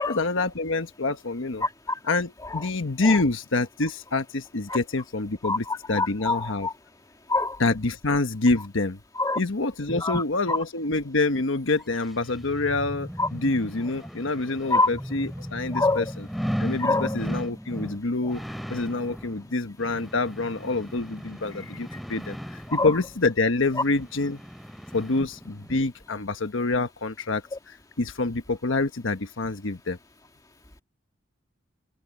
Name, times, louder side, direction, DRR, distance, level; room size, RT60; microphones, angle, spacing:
voice 1, 0.1-1.6 2.1-6.7 7.6-9.0 9.4-16.3 16.6-18.4 18.7-24.4 24.9-30.0, left 3 dB, 75° left, 1.2 m, -27 dB
voice 2, 1.6-2.0 2.5-2.6 3.0-3.2 4.7-4.8 5.4-6.7 7.3-7.6 9.2-9.4 9.9-10.2 10.5-10.6 13.2-13.3 14.7-14.9 15.7-16.0 16.8-17.2 18.2-18.3 22.7-23.0, left 2 dB, 20° left, 2.0 m, -25 dB
sound 1, 11.9-25.8 26.2-26.3, equal, ahead, 7.6 m, -37 dB
head